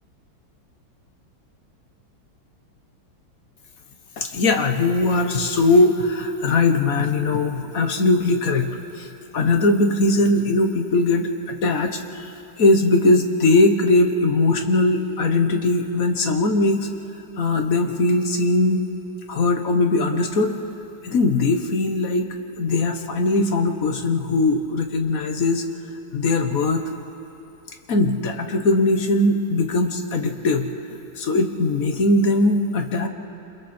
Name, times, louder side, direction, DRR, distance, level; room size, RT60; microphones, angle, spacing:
voice 1, 4.2-8.7 9.0-9.1 9.3-16.9 17.4-18.8 19.3-20.6 21.0-22.3 22.6-25.6 26.1-26.8 27.9-30.7 31.2-33.1, left 2 dB, 50° left, 5 dB, 1.5 m, -20 dB
28.5 x 27.5 x 4.4 m, 2.9 s
omnidirectional pair, 2.2 m